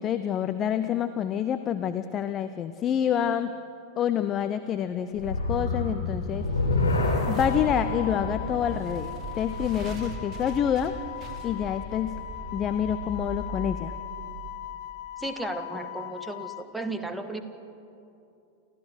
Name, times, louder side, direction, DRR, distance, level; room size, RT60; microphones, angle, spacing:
voice 1, 0.0-3.5 4.0-6.5 7.3-9.1 9.3-10.9 11.4-12.1 12.5-13.9, left 9 dB, 30° left, 10 dB, 0.7 m, -27 dB
sound 1, 5.1-10.4, left 2 dB, 75° left, 3.3 m, -29 dB
sound 2, 5.7-14.9, right 2 dB, 25° right, 2.5 m, -38 dB
Wind instrument woodwind instrument, 6.8-16.7, left 13 dB, 50° left, 1.2 m, -40 dB
voice 2, 15.2-17.4, right 2 dB, 5° right, 7 dB, 1.5 m, -34 dB
29.5 x 15.0 x 6.4 m, 2.7 s
figure-of-eight pair, 90°, 0 cm